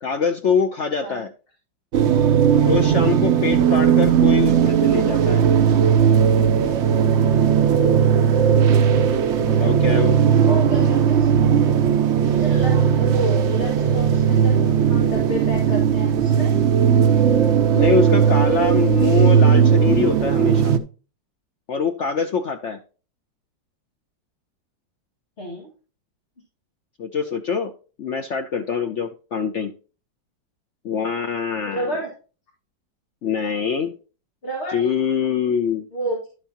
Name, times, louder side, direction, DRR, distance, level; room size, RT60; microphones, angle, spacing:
voice 1, 0.0-1.3 2.6-5.4 9.4-10.2 17.7-20.7 21.7-22.8 27.0-27.7 28.0-29.7 30.8-31.9 33.2-33.9 34.7-35.9, left 6 dB, 70° left, 6 dB, 0.7 m, -24 dB
sound 1, 1.9-20.8, right 8 dB, 90° right, 0.6 m, -17 dB
voice 2, 10.3-11.3 12.2-16.5 25.4-25.7 31.6-32.1 34.4-34.8 35.9-36.3, right 1 dB, 35° left, -2 dB, 2.2 m, -30 dB
11.5 x 6.4 x 2.9 m, 0.35 s
omnidirectional pair, 2.0 m